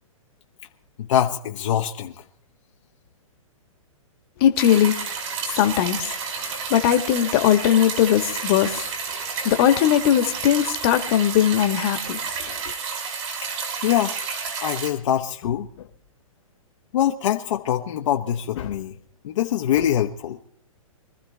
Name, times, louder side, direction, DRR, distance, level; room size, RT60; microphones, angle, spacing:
voice 1, 1.0-2.2 13.8-14.2 14.6-15.9 16.9-18.9 19.2-20.4, left 10 dB, 60° left, 1.1 m, -24 dB
voice 2, 4.4-5.0 5.5-6.1 6.7-8.8 9.4-12.2, left 11 dB, 45° left, 1.5 m, -19 dB
sound 1, 4.6-14.9, right 6 dB, 60° right, 6.0 m, -31 dB
24.5 x 14.0 x 3.4 m
hypercardioid pair, 125°, 18 cm